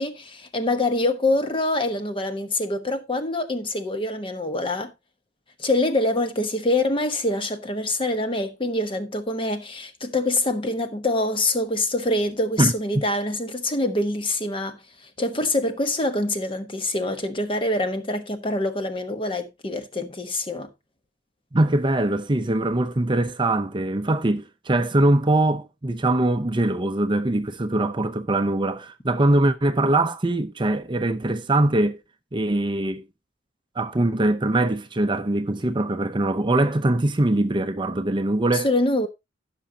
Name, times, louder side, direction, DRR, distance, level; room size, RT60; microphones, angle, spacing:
voice 1, 0.0-4.9 5.6-14.8 15.2-20.7 38.5-39.1, left 2 dB, 30° left, 1.1 m, -25 dB
voice 2, 12.6-13.1 21.5-32.0 32.3-33.0 33.8-38.7, right 2 dB, 25° right, 0.6 m, -22 dB
15.5 x 6.1 x 2.8 m
head